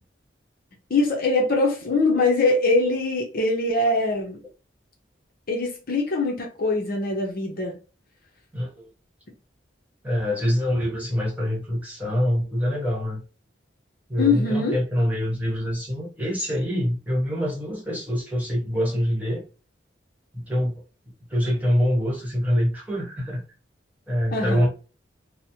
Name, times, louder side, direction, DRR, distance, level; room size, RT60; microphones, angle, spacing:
voice 1, 0.9-4.4 5.5-7.7 14.2-14.8 24.3-24.7, left 2 dB, 50° left, 0.7 m, -22 dB
voice 2, 10.0-13.2 14.1-19.4 20.3-20.8 21.3-23.4 24.1-24.7, equal, 10° right, 1.2 m, -25 dB
3.1 x 2.1 x 2.8 m
head